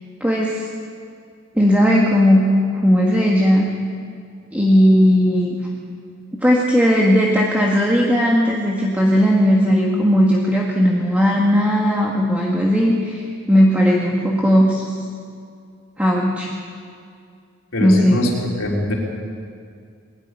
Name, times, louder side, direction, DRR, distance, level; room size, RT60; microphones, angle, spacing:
voice 1, 0.2-0.7 1.6-2.4 2.8-3.7 4.5-5.6 6.4-13.2 13.5-14.8 16.0-16.5 17.8-18.2, equal, 5° right, -3 dB, 1.8 m, -16 dB
voice 2, 17.7-18.9, left 1 dB, 70° left, -2 dB, 3.9 m, -22 dB
21.0 x 13.5 x 9.8 m, 2.3 s
head